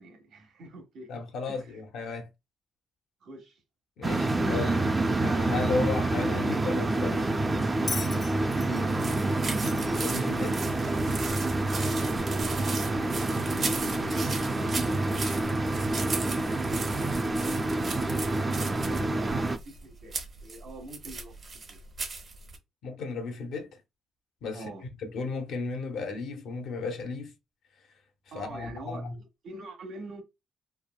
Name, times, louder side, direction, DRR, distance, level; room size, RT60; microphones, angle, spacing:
voice 1, 0.0-1.8 3.2-3.6 8.5-9.0 12.1-20.2 20.4-21.8 24.5-24.8 28.3-30.2, right 2 dB, 75° right, 1.0 m, -45 dB
voice 2, 1.1-2.3 4.0-4.8 5.2-7.3 9.8-10.6 22.8-23.7 24.4-24.7 25.0-27.3 28.3-29.1, left 4 dB, 75° left, 0.7 m, -34 dB
sound 1, 4.0-19.6, right 2 dB, 25° right, 0.4 m, -28 dB
Bell, 7.9-11.1 12.2-12.3, left 3 dB, 35° left, 0.5 m, -40 dB
sound 2, 8.9-22.6, right 4 dB, 45° right, 0.9 m, -38 dB
3.3 x 2.1 x 2.3 m
cardioid pair, 90°, 0 cm